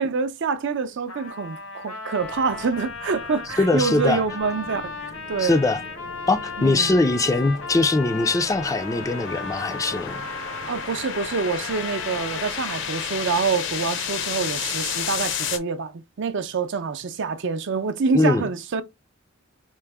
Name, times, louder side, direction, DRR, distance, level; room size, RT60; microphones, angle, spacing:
voice 1, 0.0-4.9 5.3-5.6 6.6-6.9 10.7-18.8, right 5 dB, 60° right, 0.5 m, -26 dB
Trumpet, 1.1-13.5, left 4 dB, 85° left, 1.4 m, -36 dB
sound 1, 2.2-15.6, left 7 dB, 65° left, 0.7 m, -33 dB
voice 2, 3.6-4.2 5.4-5.8 6.3-10.2 18.1-18.5, left 2 dB, 15° left, 0.3 m, -21 dB
4.5 x 2.1 x 3.4 m
head